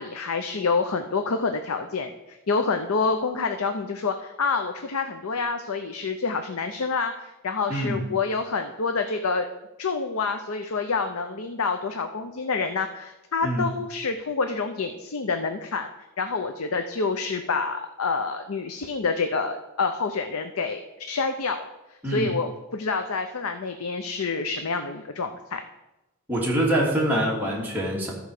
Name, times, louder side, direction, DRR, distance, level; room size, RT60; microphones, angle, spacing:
voice 1, 0.0-9.5 9.8-15.9 16.2-20.8 21.1-21.7 22.0-25.6, left 4 dB, 75° left, 7 dB, 0.7 m, -27 dB
voice 2, 7.7-8.0 13.4-13.6 22.0-22.3 26.3-28.1, right 1 dB, 10° right, -4 dB, 2.7 m, -24 dB
13.0 x 4.7 x 6.5 m, 1.0 s
head